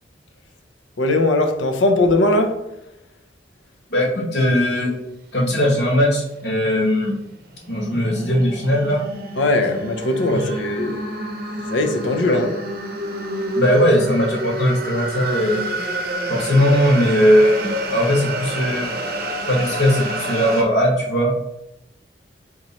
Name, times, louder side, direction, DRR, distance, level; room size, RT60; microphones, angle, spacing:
voice 1, 1.0-2.6 9.4-11.0 11.7-12.5, left 2 dB, 85° left, 0.6 m, -19 dB
voice 2, 3.9-4.9 5.3-7.1 7.7-9.0 10.3-10.9 12.3-12.4 13.5-15.6 16.3-18.9 19.5-21.3, equal, 65° left, 1.3 m, -19 dB
sound 1, 7.4-20.6, right 1 dB, 50° right, 0.6 m, -28 dB
3.7 x 3.1 x 4.0 m
head